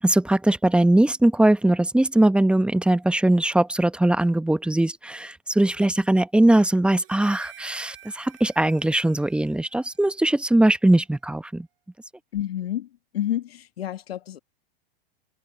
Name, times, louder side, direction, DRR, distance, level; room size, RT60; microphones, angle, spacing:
voice 1, 0.0-11.7, right 1 dB, 5° right, 0.9 m, -20 dB
Harmonica, 6.9-11.4, right 14 dB, 75° right, 6.3 m, -51 dB
voice 2, 12.3-12.9 13.1-14.4, left 12 dB, 85° left, 1.8 m, -29 dB
hypercardioid pair, 110°, 30 cm